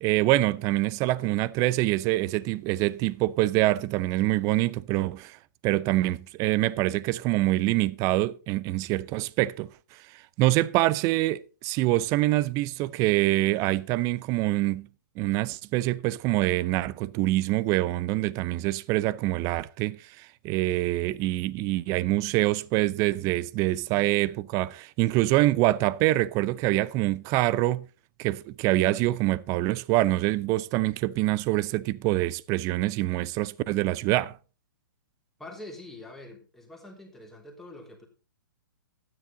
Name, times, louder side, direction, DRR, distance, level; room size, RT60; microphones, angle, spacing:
voice 1, 0.0-5.4 5.6-10.0 10.4-14.9 15.2-27.9 28.2-34.4, right 17 dB, 30° right, 0.5 m, -25 dB
voice 2, 35.4-38.1, left 2 dB, 5° left, 3.3 m, -45 dB
12.5 x 9.8 x 4.0 m
hypercardioid pair, 125°, 11 cm